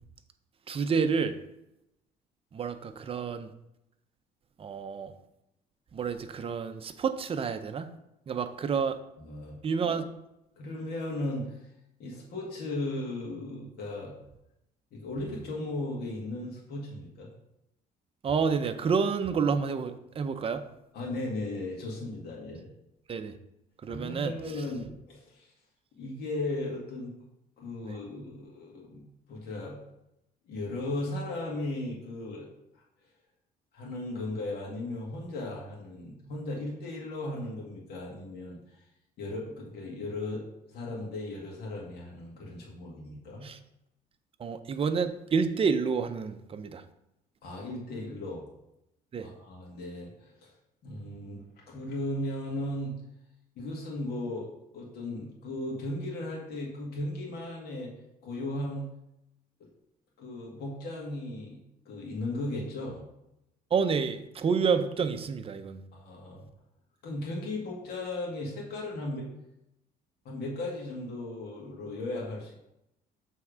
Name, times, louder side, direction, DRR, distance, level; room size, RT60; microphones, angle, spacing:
voice 1, 0.7-1.4 2.5-3.5 4.6-5.1 5.9-7.9 8.3-9.0 9.6-10.1 18.2-20.7 23.1-23.3 23.8-24.3 43.4-43.6 44.4-46.8 49.1-49.3 63.7-65.8, right 5 dB, 35° right, 9 dB, 0.6 m, -29 dB
voice 2, 9.2-9.6 10.6-11.7 12.0-14.1 14.9-17.3 20.9-22.7 23.9-25.5 26.0-27.1 27.6-29.8 30.5-32.5 33.7-38.6 39.2-40.4 40.7-43.4 47.4-48.5 49.2-50.5 50.8-52.9 53.6-54.5 54.7-57.9 58.2-58.9 60.2-61.6 61.9-63.0 65.9-66.5 67.0-69.3 70.3-72.5, left 2 dB, 70° left, -3 dB, 1.8 m, -36 dB
6.9 x 3.6 x 5.0 m, 0.86 s
cardioid pair, 110°, 17 cm